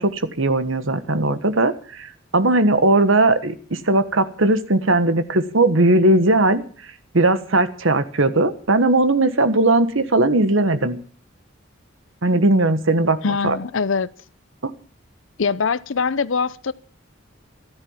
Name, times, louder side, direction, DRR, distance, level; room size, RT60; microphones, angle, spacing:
voice 1, 0.0-6.6 7.1-11.0 12.2-13.2 13.4-13.6 14.6-14.7, right 2 dB, 75° right, 1.4 m, -18 dB
voice 2, 13.2-14.1 15.4-16.7, left 5 dB, 70° left, 0.7 m, -22 dB
14.0 x 12.5 x 7.3 m
head